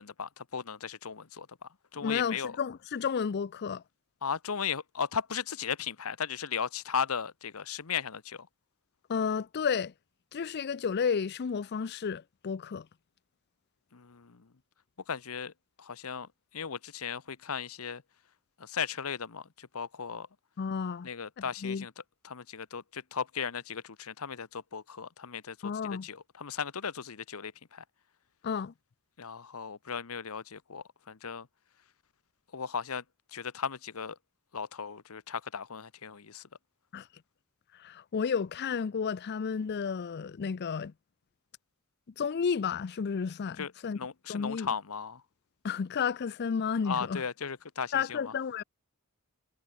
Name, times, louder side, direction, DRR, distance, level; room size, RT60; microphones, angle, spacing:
voice 1, 0.0-2.5 4.2-8.5 13.9-14.5 15.1-15.5 15.8-18.0 18.6-20.3 21.0-21.9 22.2-27.8 29.2-31.5 32.5-33.0 33.3-34.2 34.5-36.4 43.6-45.2 46.8-48.3, left 6 dB, 70° left, 0.9 m, -36 dB
voice 2, 2.0-3.8 9.1-9.9 10.3-12.9 20.6-21.1 21.6-21.9 25.6-26.1 28.4-28.7 36.9-37.1 37.7-40.9 42.2-44.0 44.3-44.7 45.6-47.2 47.9-48.6, left 6 dB, 50° left, 0.4 m, -32 dB
head